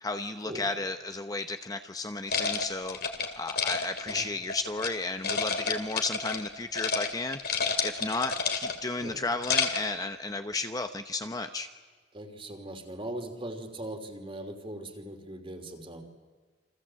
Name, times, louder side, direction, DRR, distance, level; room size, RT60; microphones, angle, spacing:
voice 1, 0.0-3.0 3.4-7.4 7.8-11.7, left 3 dB, 20° left, 7 dB, 0.9 m, -33 dB
sound 1, 2.3-4.9 5.2-6.5 6.7-7.1 7.3-8.9 9.3-9.9, left 5 dB, 60° left, 2.4 m, -30 dB
voice 2, 12.1-16.0, right 1 dB, 30° right, 5 dB, 3.1 m, -40 dB
29.0 x 25.5 x 7.7 m, 1.4 s
head